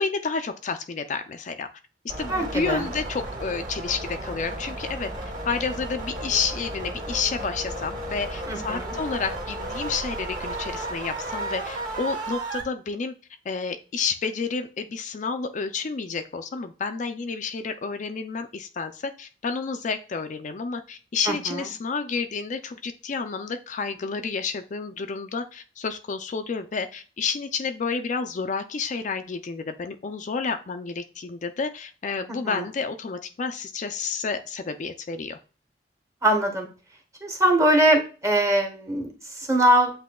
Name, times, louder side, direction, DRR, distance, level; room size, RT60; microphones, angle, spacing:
voice 1, 0.0-1.7 2.2-5.1 5.4-13.1 13.5-35.4, left 5 dB, 45° left, 7 dB, 0.4 m, -30 dB
sound 1, 2.1-12.6, right 2 dB, 45° right, 1.8 m, -34 dB
voice 2, 2.3-2.9 8.5-8.9 21.3-21.6 32.3-32.7 36.2-36.7 37.2-39.9, right 1 dB, 20° right, 3 dB, 1.1 m, -22 dB
8.2 x 2.7 x 2.2 m, 0.34 s
head